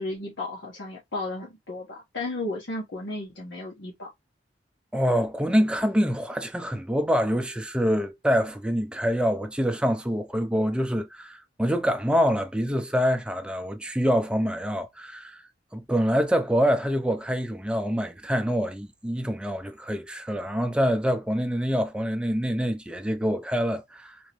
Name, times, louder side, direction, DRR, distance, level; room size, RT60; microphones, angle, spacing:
voice 1, 0.0-4.1, left 2 dB, 70° left, 1.2 m, -34 dB
voice 2, 4.9-15.4 15.7-24.2, equal, 5° right, 0.5 m, -25 dB
3.8 x 2.9 x 3.0 m
head